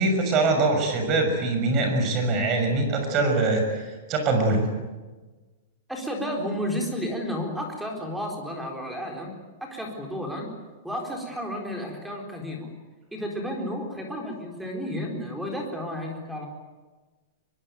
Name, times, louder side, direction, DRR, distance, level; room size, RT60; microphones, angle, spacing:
voice 1, 0.0-4.6, right 2 dB, 25° right, 5 dB, 6.3 m, -23 dB
voice 2, 5.9-9.3 9.6-10.5 10.8-12.7 13.1-16.5, equal, 5° right, 1 dB, 4.0 m, -32 dB
23.5 x 22.5 x 9.4 m, 1.2 s
supercardioid pair, 165°, 0 cm